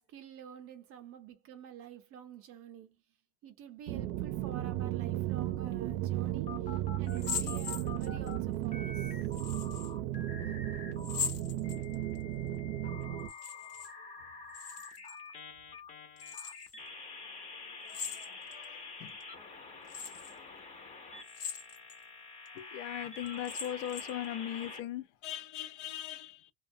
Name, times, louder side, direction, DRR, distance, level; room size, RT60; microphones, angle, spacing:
voice 1, 0.1-3.0 3.4-9.2, right 9 dB, 35° right, 0.5 m, -49 dB
sound 1, 3.9-13.3, right 14 dB, 85° right, 0.5 m, -35 dB
sound 2, 5.7-8.4 8.7-11.3 11.6-24.8, left 4 dB, 20° left, 0.5 m, -47 dB
sound 3, 7.1-8.3 9.3-9.9 11.0-12.2 13.2-13.9 14.2-15.2 16.2-16.7 17.9-18.6 19.2-19.3 19.9-20.3 21.2-22.0 22.5-22.6 23.3-24.2, left 6 dB, 85° left, 1.0 m, -40 dB
voice 2, 12.8-13.2 17.6-19.1 19.6-19.8 20.1-20.5 22.5-26.5, left 12 dB, 65° left, 0.5 m, -41 dB
2.5 x 2.2 x 2.5 m
supercardioid pair, 150°, 40 cm